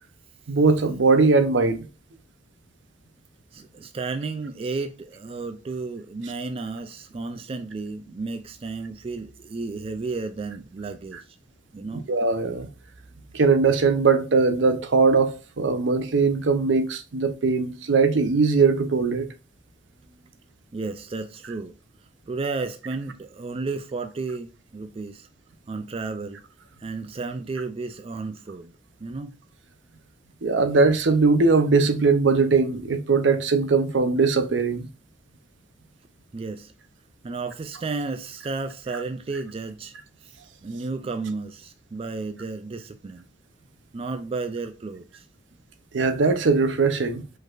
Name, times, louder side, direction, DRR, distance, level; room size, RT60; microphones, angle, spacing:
voice 1, 0.5-1.8 12.1-12.7 13.3-19.3 30.4-34.9 45.9-47.2, right 4 dB, 70° right, 0.6 m, -20 dB
voice 2, 3.5-11.4 11.7-12.0 20.1-20.2 20.7-21.7 22.3-25.3 25.7-26.4 26.8-28.7 29.0-29.3 36.3-36.7 37.2-40.0 40.2-40.3 40.6-43.2 43.9-45.3, right 3 dB, 30° right, 0.4 m, -33 dB
5.1 x 3.9 x 2.5 m
head